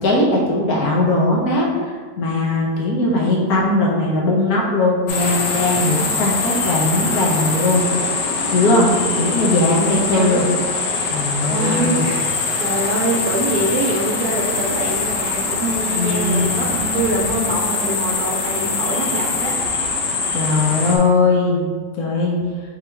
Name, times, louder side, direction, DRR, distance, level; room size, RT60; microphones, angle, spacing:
voice 1, 0.0-7.8 8.1-10.5 11.1-12.1 15.9-16.5 20.3-22.4, left 2 dB, 65° left, -2 dB, 1.1 m, -19 dB
sound 1, 5.1-21.0, left 4 dB, 85° left, 1.4 m, -23 dB
voice 2, 10.1-10.5 11.5-19.5, right 2 dB, 70° right, -1 dB, 1.1 m, -24 dB
3.7 x 3.0 x 4.4 m, 1.6 s
omnidirectional pair, 1.9 m